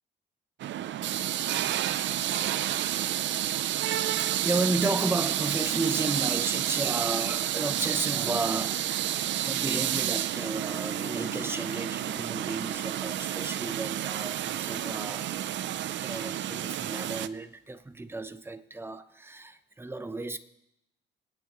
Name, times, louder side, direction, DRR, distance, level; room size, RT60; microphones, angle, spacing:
sound 1, 0.6-17.3, right 12 dB, 70° right, 0.5 m, -30 dB
voice 1, 4.2-15.4 16.0-20.4, right 2 dB, 10° right, 0.8 m, -33 dB
sound 2, 10.5-15.5, right 4 dB, 45° right, 1.6 m, -46 dB
23.0 x 9.4 x 3.0 m
cardioid pair, 90°, 20 cm